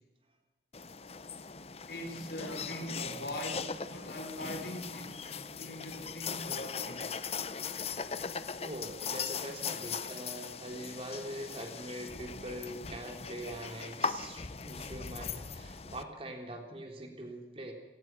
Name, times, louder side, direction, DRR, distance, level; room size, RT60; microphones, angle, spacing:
sound 1, 0.7-16.0, left 5 dB, 35° left, 0.8 m, -39 dB
voice 1, 1.9-7.1, equal, 60° left, 3 dB, 4.7 m, -42 dB
voice 2, 8.6-17.7, right 1 dB, 30° right, 3 dB, 3.6 m, -43 dB
28.0 x 19.0 x 6.2 m, 1.1 s
head